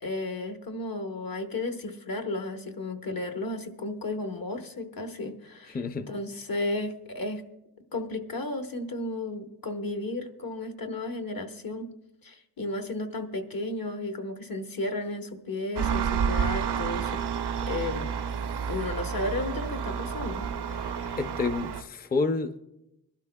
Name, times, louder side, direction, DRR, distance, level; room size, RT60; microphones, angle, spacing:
voice 1, 0.0-5.8 6.1-7.4 7.9-11.9 12.2-17.2 17.6-18.1 18.7-21.2, left 2 dB, 60° left, 5 dB, 1.2 m, -34 dB
voice 2, 5.7-6.1 20.7-20.9 21.2-22.7, left 3 dB, 25° left, 8 dB, 0.5 m, -29 dB
Engine, 15.8-21.8, right 7 dB, 75° right, 0.6 m, -30 dB
23.0 x 12.0 x 2.2 m, 0.88 s
wide cardioid pair, 75°, 40 cm